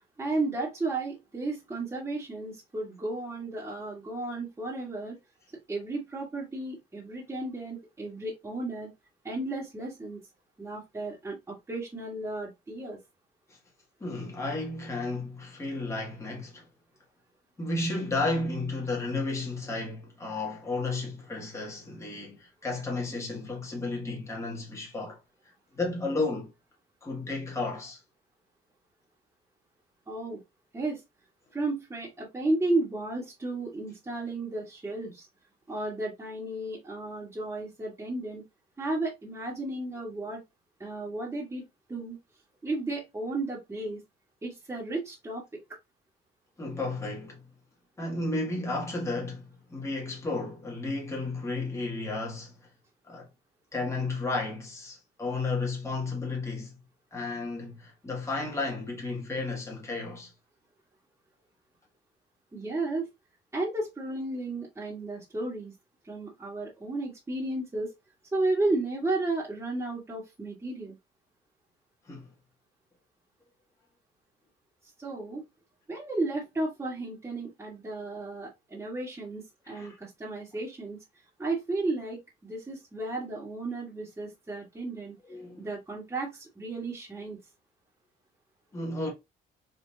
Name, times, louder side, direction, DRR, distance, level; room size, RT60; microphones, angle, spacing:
voice 1, 0.2-5.2 5.7-8.9 9.2-10.2 10.6-13.0 30.1-30.4 30.7-31.0 31.5-35.3 35.7-38.4 38.8-40.4 40.8-42.2 42.6-44.0 44.4-45.6 62.5-63.1 63.5-65.7 66.0-67.9 68.3-71.0 75.0-75.5 75.9-81.0 81.4-85.2 85.6-87.4, right 2 dB, 15° right, 1.8 m, -33 dB
voice 2, 14.0-16.7 17.6-26.5 27.0-28.0 46.6-47.4 48.0-52.7 53.1-53.3 53.7-56.7 57.1-60.3 72.1-72.3 79.7-80.0 85.3-85.7 88.7-89.1, left 3 dB, 15° left, 1.7 m, -33 dB
4.0 x 4.0 x 2.8 m
cardioid pair, 110°, 17 cm